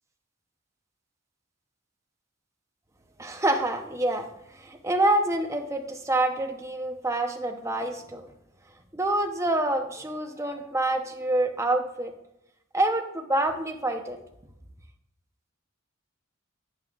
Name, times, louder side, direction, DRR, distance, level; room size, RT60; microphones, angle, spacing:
voice 1, 3.2-4.3 4.5-8.3 8.9-12.1 12.7-14.2, right 1 dB, 15° right, 5 dB, 0.8 m, -27 dB
9.6 x 9.4 x 2.4 m, 0.84 s
head